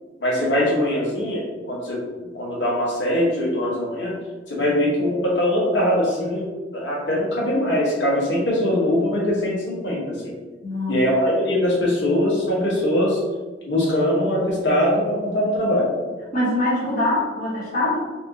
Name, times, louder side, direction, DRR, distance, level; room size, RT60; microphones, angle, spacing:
voice 1, 0.2-2.0 2.3-4.2 4.5-10.3 10.9-13.2 13.7-15.9, left 1 dB, 85° left, -4 dB, 1.2 m, -22 dB
voice 2, 10.6-10.9 16.3-18.0, left 1 dB, 45° left, -9 dB, 1.0 m, -23 dB
4.1 x 2.7 x 2.8 m, 1.3 s
head